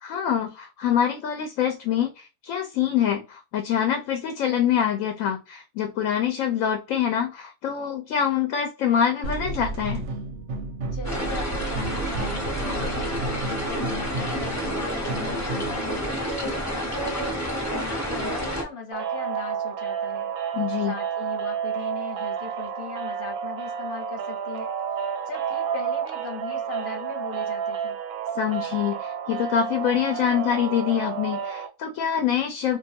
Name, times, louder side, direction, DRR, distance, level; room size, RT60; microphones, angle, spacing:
voice 1, 0.0-10.0 20.5-20.9 28.4-32.8, left 9 dB, 75° left, 5 dB, 1.0 m, -25 dB
sound 1, 9.2-15.9, right 3 dB, 65° right, 0.7 m, -33 dB
voice 2, 10.9-13.0 13.5-17.4 17.7-20.3 20.8-24.7 25.3-28.0, left 4 dB, 45° left, 1 dB, 0.9 m, -38 dB
sound 2, 11.0-18.6, equal, 15° left, 0.6 m, -29 dB
sound 3, 18.9-31.7, right 8 dB, 90° right, 1.0 m, -30 dB
2.4 x 2.3 x 2.7 m, 0.29 s
omnidirectional pair, 1.5 m